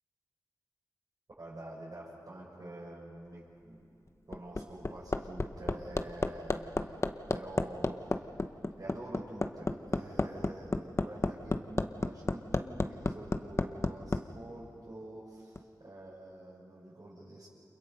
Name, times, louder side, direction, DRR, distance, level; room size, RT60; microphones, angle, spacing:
voice 1, 1.4-3.8 4.3-7.0 7.3-8.3 8.8-17.5, right 1 dB, 55° right, -8 dB, 6.6 m, -47 dB
Hammer, 4.1-14.2 15.6-15.7, left 2 dB, 40° left, 1.0 m, -31 dB
30.0 x 27.5 x 5.6 m, 2.6 s
wide cardioid pair, 60°, 7 cm